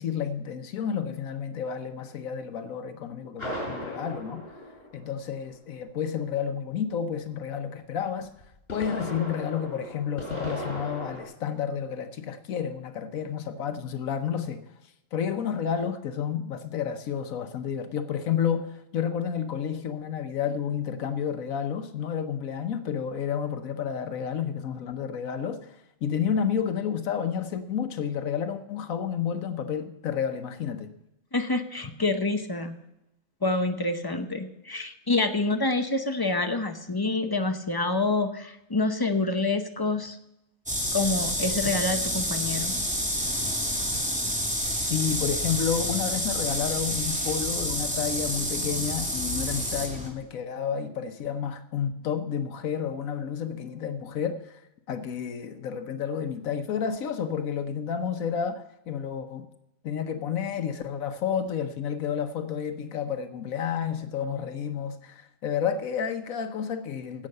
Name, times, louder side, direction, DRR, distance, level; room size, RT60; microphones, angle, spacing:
voice 1, 0.0-4.4 4.9-8.3 8.7-14.6 15.1-30.9 44.9-54.6 54.9-59.5 59.8-67.3, left 7 dB, 80° left, 1.3 m, -30 dB
sound 1, 3.4-5.5 8.4-11.2, equal, 45° left, 4.2 m, -37 dB
voice 2, 31.3-32.8 33.4-40.2 40.9-42.7, left 2 dB, 20° left, 0.6 m, -27 dB
sound 2, 40.7-50.1, equal, 5° right, 2.0 m, -29 dB
16.0 x 6.4 x 6.6 m
omnidirectional pair, 1.4 m